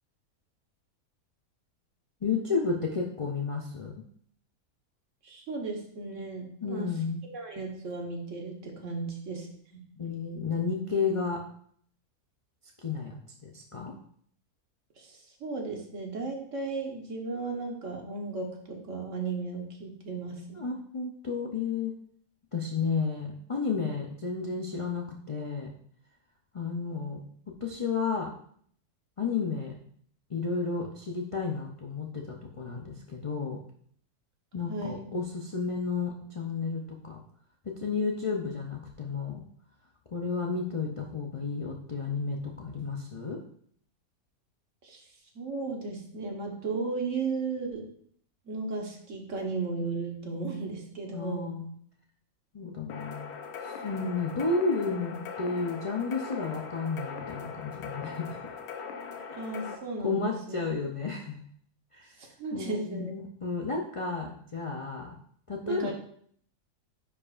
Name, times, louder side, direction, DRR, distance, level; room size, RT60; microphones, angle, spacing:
voice 1, 2.2-3.9 6.6-7.2 10.0-11.5 12.8-13.9 20.5-21.9 22.5-25.7 26.5-27.2 27.6-28.3 29.2-29.7 30.3-33.6 34.5-37.2 37.8-39.4 40.1-43.4 51.1-51.7 52.5-53.3 53.6-58.5 59.2-59.4 60.0-61.4 61.9-62.1 62.5-65.2 65.5-65.9, left 4 dB, 55° left, 0 dB, 0.3 m, -32 dB
voice 2, 5.2-6.9 7.3-9.5 9.7-9.8 15.0-20.7 34.7-35.1 44.8-45.0 45.3-47.9 48.4-51.5 59.3-60.6 62.2-63.1 65.6-65.9, right 3 dB, 60° right, 1 dB, 1.4 m, -35 dB
sound 1, 52.9-59.8, left 6 dB, 85° left, 1.3 m, -40 dB
10.0 x 4.8 x 2.5 m, 0.62 s
omnidirectional pair, 1.6 m